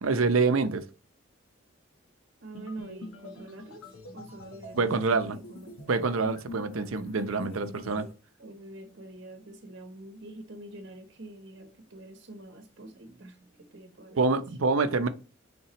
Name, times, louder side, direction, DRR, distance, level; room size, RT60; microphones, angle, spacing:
voice 1, 0.0-0.9 4.8-5.4 5.9-8.1 14.2-15.1, right 4 dB, 85° right, 0.7 m, -26 dB
voice 2, 2.4-3.9 4.1-4.9 5.2-5.8 8.4-14.4, right 2 dB, 60° right, 0.9 m, -45 dB
sound 1, 2.5-8.1, left 2 dB, 90° left, 1.1 m, -44 dB
8.8 x 3.7 x 3.0 m
head